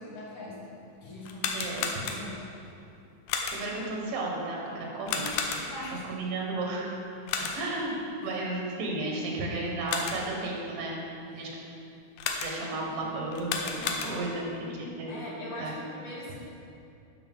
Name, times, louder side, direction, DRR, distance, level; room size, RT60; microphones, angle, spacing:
voice 1, 0.0-1.7 2.0-2.8 5.5-6.1 8.2-8.3 11.4-11.5 13.0-13.5 15.1-16.4, left 1 dB, 60° left, -5 dB, 2.2 m, -42 dB
sound 1, 1.2-2.5 3.3-3.8 5.1-5.9 7.3-7.8 9.6-10.4 12.2-12.8 13.3-14.5, left 5 dB, 85° left, 2.2 m, -33 dB
voice 2, 1.5-1.9 3.5-5.7 6.0-7.0 7.4-7.9 8.2-11.0 11.3-11.5 12.4-15.2 15.6-15.8, right 2 dB, 80° right, -2 dB, 2.9 m, -33 dB
11.5 x 5.8 x 3.6 m, 2.6 s
omnidirectional pair, 3.7 m